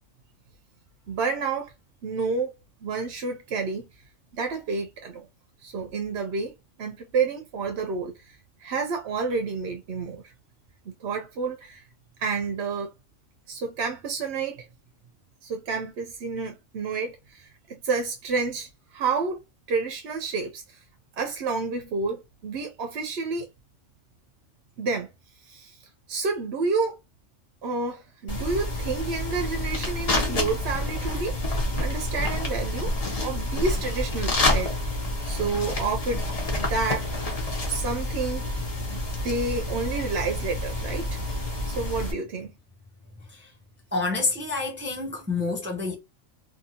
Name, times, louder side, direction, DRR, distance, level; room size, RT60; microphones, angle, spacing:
voice 1, 1.1-1.7 2.0-2.5 2.8-3.9 4.3-5.3 5.6-6.5 6.8-10.3 11.0-11.8 12.2-12.9 13.5-14.7 15.4-19.4 19.7-20.8 21.1-23.5 24.8-25.1 25.4-25.8 26.1-27.0 27.6-32.9 33.2-34.7 35.2-36.3 36.6-37.1 37.7-38.6 38.9-41.2 41.7-42.5, right 4 dB, 60° right, 0.8 m, -30 dB
sound 1, 28.3-42.1, left 1 dB, 35° left, 0.9 m, -28 dB
voice 2, 43.9-45.9, left 3 dB, 15° right, 0.3 m, -28 dB
2.7 x 2.7 x 2.7 m
omnidirectional pair, 1.3 m